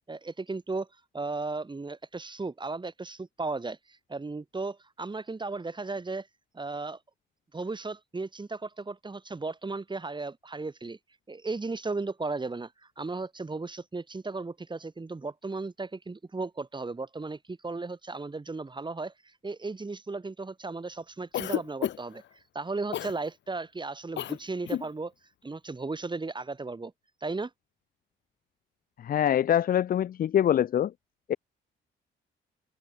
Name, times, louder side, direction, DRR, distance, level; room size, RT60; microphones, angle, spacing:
voice 1, 0.1-0.9 1.1-6.3 6.5-7.0 7.5-11.0 11.3-12.7 13.0-22.2 22.5-25.1 25.4-26.9 27.2-27.5, right 3 dB, 25° right, 6.6 m, -35 dB
Cough, 21.3-22.2 22.9-23.2 24.2-24.4 24.6-24.9, left 11 dB, 65° left, 0.9 m, -31 dB
voice 2, 29.0-30.9 31.3-31.4, left 10 dB, 45° left, 0.5 m, -24 dB
open air
cardioid pair, 90°, 20 cm